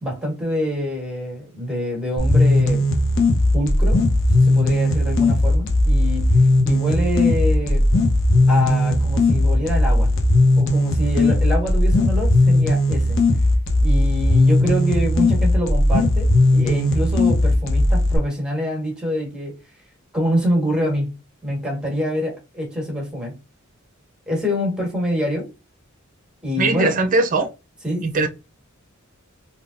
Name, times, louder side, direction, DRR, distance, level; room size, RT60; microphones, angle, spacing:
voice 1, 0.0-2.9 3.5-4.0 4.4-6.4 6.6-7.9 8.5-10.1 10.6-13.2 13.8-19.6 20.1-23.4 24.3-25.5 26.4-27.0 27.8-28.1, equal, 5° right, 1.5 m, -25 dB
sound 1, 2.2-18.2, left 1 dB, 65° left, 0.9 m, -17 dB
voice 2, 26.6-27.5 28.0-28.3, right 3 dB, 40° right, 0.6 m, -19 dB
3.6 x 2.8 x 2.6 m
head